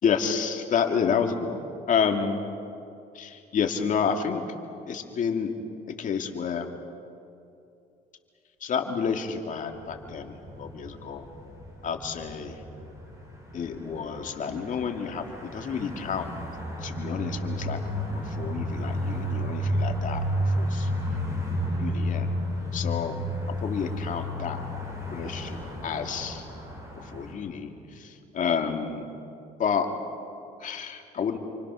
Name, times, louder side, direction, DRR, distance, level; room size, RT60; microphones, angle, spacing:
voice 1, 0.0-1.6 1.9-2.5 3.1-4.4 4.9-5.5 6.0-6.7 8.6-11.3 11.8-12.6 13.5-16.3 16.8-17.8 18.1-20.2 20.5-20.9 21.8-22.3 22.7-23.2 23.6-24.6 25.1-25.6 25.8-26.5 27.1-29.0 29.6-29.9 30.6-31.4, left 6 dB, 50° left, 4 dB, 2.5 m, -29 dB
sound 1, 9.7-27.3, equal, 20° right, 7.1 m, -32 dB
29.0 x 24.5 x 6.4 m, 2.7 s
cardioid pair, 110°, 17 cm